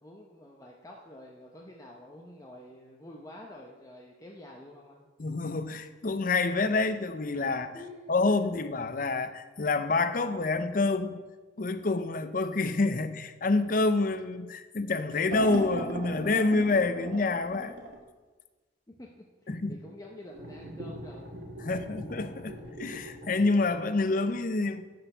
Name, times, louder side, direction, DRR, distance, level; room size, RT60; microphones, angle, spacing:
voice 1, 0.0-5.1 7.7-8.4 18.9-21.4 21.6-21.9, left 1 dB, 20° left, -1 dB, 0.8 m, -48 dB
voice 2, 5.2-7.8 8.1-11.2 11.6-17.7 19.5-19.8 21.7-24.8, left 3 dB, 50° left, 11 dB, 0.6 m, -27 dB
sound 1, 15.3-18.0 20.3-23.4, right 1 dB, 85° right, 1.8 m, -39 dB
11.5 x 4.4 x 6.7 m, 1.3 s
head